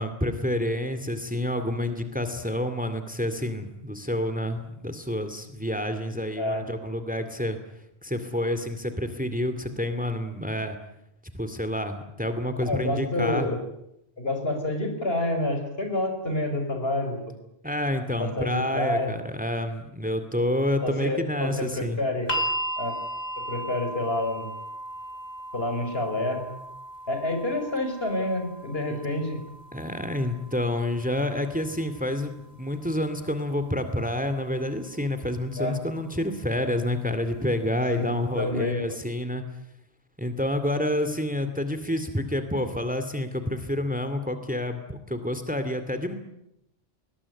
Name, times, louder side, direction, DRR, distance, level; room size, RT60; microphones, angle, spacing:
voice 1, 0.0-7.6 8.0-10.8 11.3-13.5 17.6-22.0 28.9-29.0 29.7-39.4 40.2-46.2, left 1 dB, 10° right, 9 dB, 2.3 m, -28 dB
voice 2, 6.4-6.7 12.7-13.6 14.2-17.3 18.2-19.1 20.8-22.3 22.8-22.9 23.5-24.5 25.5-26.4 27.1-29.4 35.6-35.8 38.0-39.0, left 1 dB, 70° left, 5 dB, 5.9 m, -28 dB
sound 1, 22.3-34.4 35.4-35.5, right 1 dB, 45° left, 1.9 m, -37 dB
21.0 x 21.0 x 9.9 m, 0.81 s
omnidirectional pair, 1.1 m